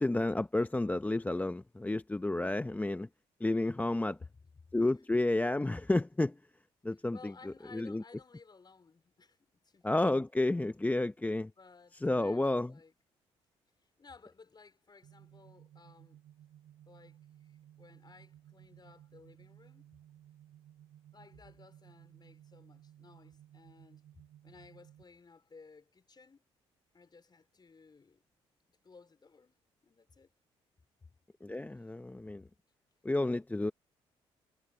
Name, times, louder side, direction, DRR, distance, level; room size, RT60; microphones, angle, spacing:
voice 1, 0.0-3.1 3.4-4.2 4.7-6.3 6.8-7.3 7.7-8.0 9.8-11.5 12.0-12.7 31.4-32.4 33.0-33.7, left 2 dB, 15° left, 0.8 m, -31 dB
voice 2, 4.2-4.8 6.9-10.0 11.2-12.9 13.8-16.2 16.9-17.2 17.4-19.9 21.1-24.0 24.4-26.4 26.9-28.2 28.8-29.5 29.8-30.3 31.0-31.1, left 4 dB, 35° left, 4.3 m, -57 dB
sound 1, 15.0-25.0, right 11 dB, 75° right, 3.0 m, -58 dB
supercardioid pair, 60°, 12 cm